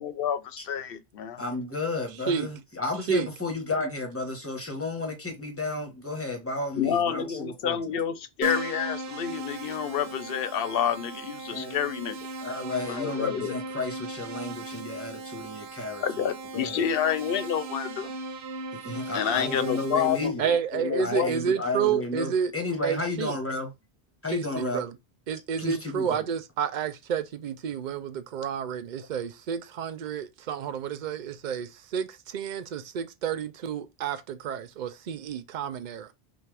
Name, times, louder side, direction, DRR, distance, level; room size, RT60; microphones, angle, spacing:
voice 1, 0.0-1.4 6.8-12.3 12.9-13.6 16.0-18.1 19.1-21.6, left 8 dB, 70° left, 0.8 m, -29 dB
voice 2, 1.4-7.8 11.5-11.8 12.4-16.0 16.5-16.8 18.7-20.4 21.0-23.7 24.2-24.8 25.6-26.2, left 2 dB, 15° left, 1.3 m, -32 dB
Keyboard (musical), 8.4-20.3, right 2 dB, 90° right, 1.0 m, -38 dB
voice 3, 20.4-22.5 22.8-23.4 24.3-24.9 25.3-36.1, right 7 dB, 55° right, 0.7 m, -30 dB
5.7 x 2.6 x 3.3 m
omnidirectional pair, 1.0 m